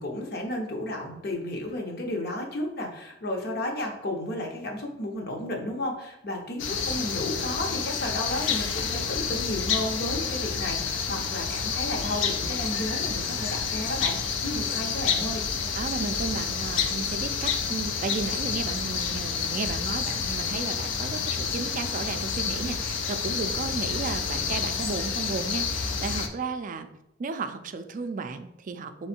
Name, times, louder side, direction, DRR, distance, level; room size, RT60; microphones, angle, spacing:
voice 1, 0.0-15.4, left 1 dB, 55° left, 1 dB, 0.8 m, -33 dB
sound 1, 6.6-26.3, left 6 dB, 85° left, 0.5 m, -29 dB
voice 2, 14.6-14.9 15.8-26.9 27.2-29.1, right 4 dB, 45° right, 9 dB, 0.4 m, -34 dB
3.6 x 3.1 x 4.3 m, 0.84 s
head